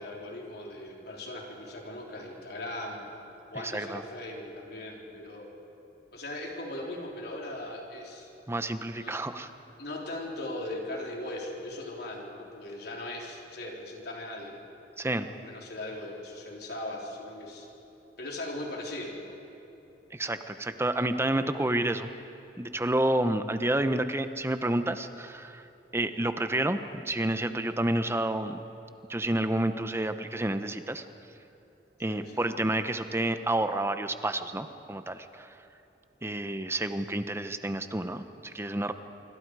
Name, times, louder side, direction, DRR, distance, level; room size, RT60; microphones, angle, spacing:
voice 1, 0.0-3.1 3.5-5.5 6.1-8.3 8.9-9.3 9.8-14.6 15.3-17.7 18.2-19.4 32.1-32.4, left 1 dB, 65° left, -1 dB, 3.9 m, -39 dB
voice 2, 3.6-4.0 8.5-9.5 15.0-15.3 20.1-22.1 22.6-25.7 25.9-28.6 29.1-31.0 32.0-35.6 36.2-38.9, right 1 dB, 15° right, 9 dB, 0.9 m, -29 dB
26.0 x 25.0 x 4.8 m, 3.0 s
head